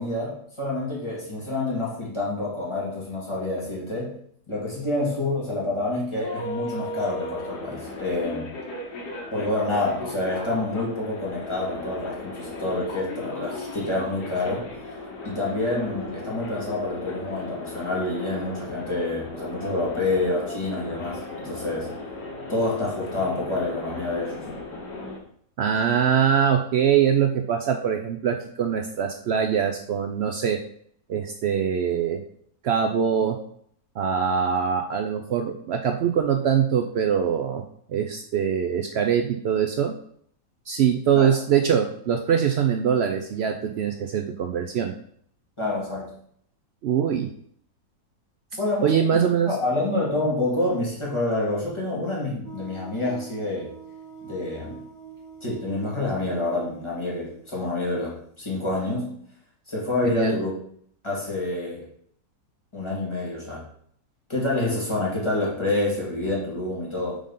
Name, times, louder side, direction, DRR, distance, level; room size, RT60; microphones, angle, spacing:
voice 1, 0.0-4.2 4.5-8.5 9.3-14.7 15.2-21.9 22.5-24.3 41.1-41.4 45.6-46.1 48.5-53.7 54.2-54.8 55.4-59.2 59.7-60.5 61.0-61.9 62.7-63.6 64.3-67.2, left 2 dB, 20° left, -6 dB, 2.1 m, -27 dB
sound 1, 6.2-25.2, left 2 dB, 80° left, 1.7 m, -36 dB
voice 2, 25.6-30.6 31.1-32.2 32.6-33.4 34.0-37.6 37.9-39.9 40.7-44.9 46.8-47.3 48.8-49.5 60.0-60.3, right 8 dB, 85° right, 5 dB, 0.5 m, -23 dB
sound 2, 52.4-59.0, right 6 dB, 50° right, 2.2 m, -45 dB
5.0 x 3.7 x 5.4 m, 0.64 s
omnidirectional pair, 1.7 m